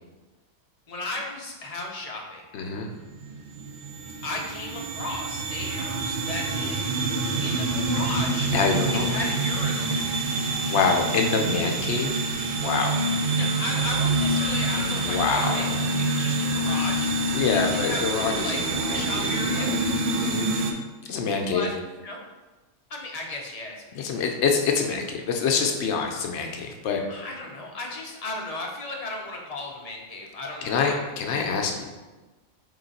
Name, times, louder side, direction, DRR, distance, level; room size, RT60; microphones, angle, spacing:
voice 1, 0.9-2.4 4.2-6.8 7.4-8.5 8.9-9.9 13.3-15.7 16.0-17.1 17.5-19.7 21.5-21.7 22.0-22.2 22.9-24.3 27.1-31.0, left 2 dB, 40° left, 0 dB, 0.6 m, -35 dB
voice 2, 2.5-2.9 8.5-9.1 10.7-12.3 12.6-13.1 15.0-15.7 17.3-19.8 20.2-20.5 21.0-21.7 23.9-27.0 30.6-31.8, left 5 dB, 70° left, 2 dB, 0.8 m, -26 dB
sound 1, 2.7-20.7, right 2 dB, 60° right, 0.6 m, -26 dB
3.7 x 3.1 x 4.0 m, 1.2 s
omnidirectional pair, 1.2 m